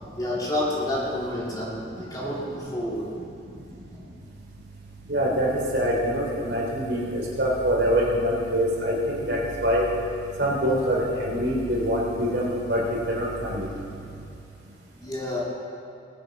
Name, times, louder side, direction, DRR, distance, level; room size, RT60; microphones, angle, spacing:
voice 1, 0.1-3.0 3.9-4.0 13.6-14.0 15.0-15.4, left 1 dB, 20° left, -6 dB, 2.9 m, -30 dB
voice 2, 5.1-9.8 10.4-13.7, equal, 65° right, -4 dB, 3.4 m, -24 dB
20.0 x 7.9 x 5.3 m, 2.7 s
head